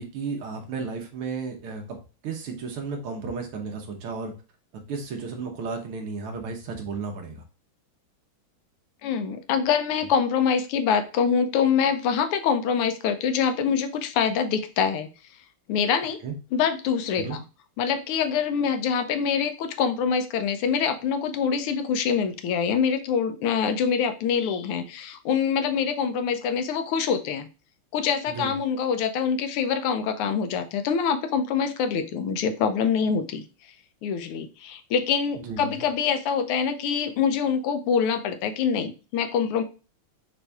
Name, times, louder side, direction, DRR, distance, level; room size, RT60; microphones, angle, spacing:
voice 1, 0.0-2.0 2.2-4.3 4.7-7.4 16.2-16.3 17.2-17.4 28.3-28.5 35.4-35.7, right 4 dB, 80° right, 2 dB, 1.9 m, -33 dB
voice 2, 9.0-15.1 15.7-16.2 16.5-17.4 17.8-27.5 27.9-33.4 34.0-39.6, left 6 dB, 85° left, 8 dB, 1.6 m, -25 dB
5.9 x 2.6 x 3.4 m, 0.33 s
omnidirectional pair, 2.4 m